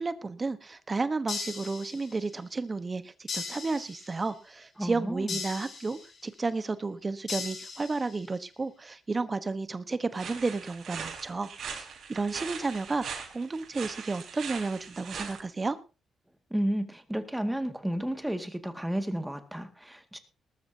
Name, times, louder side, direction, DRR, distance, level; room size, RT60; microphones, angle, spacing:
voice 1, 0.0-15.8, right 3 dB, 30° right, 12 dB, 1.1 m, -32 dB
sound 1, 1.3-2.3 3.3-4.3 5.3-6.3 7.3-8.3, left 5 dB, 55° left, 5.2 m, -38 dB
voice 2, 4.8-5.4 16.5-20.2, right 1 dB, 5° right, 7 dB, 2.0 m, -32 dB
sound 2, 10.1-15.4, right 6 dB, 65° right, 4.7 m, -40 dB
19.5 x 13.0 x 2.8 m, 0.31 s
cardioid pair, 95°, 0 cm